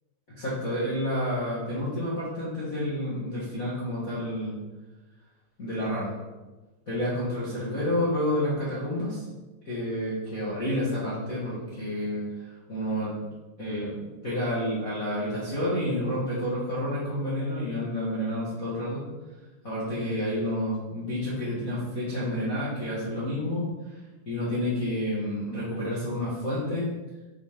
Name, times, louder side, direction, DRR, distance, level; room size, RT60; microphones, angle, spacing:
voice 1, 0.3-4.5 5.6-6.1 6.8-9.2 9.6-13.2 13.6-19.0 19.6-24.0 24.2-26.9, left 1 dB, 75° left, -10 dB, 0.7 m, -29 dB
8.2 x 4.3 x 3.7 m, 1.2 s
omnidirectional pair, 5.0 m